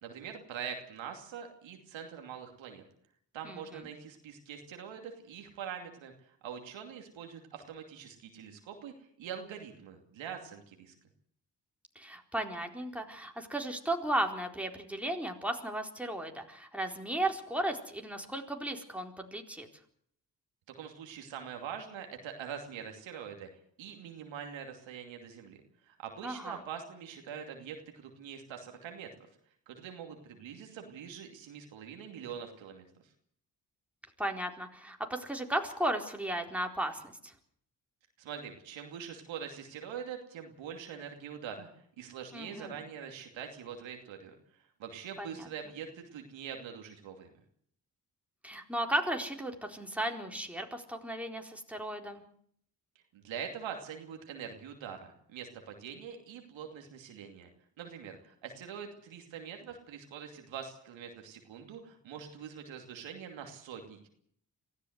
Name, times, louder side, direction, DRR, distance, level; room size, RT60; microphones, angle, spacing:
voice 1, 0.0-2.8 3.3-8.9 9.2-10.9 20.8-23.5 23.8-29.1 29.7-32.8 38.2-41.7 42.0-44.3 44.8-47.4 53.1-57.5 57.8-64.1, right 7 dB, 85° right, 4 dB, 2.7 m, -44 dB
voice 2, 3.4-3.8 12.0-19.7 26.2-26.6 34.2-37.3 42.3-42.8 45.2-45.5 48.4-52.2, right 1 dB, 5° right, 2 dB, 4.2 m, -35 dB
23.5 x 15.0 x 8.0 m, 0.65 s
supercardioid pair, 40°, 45 cm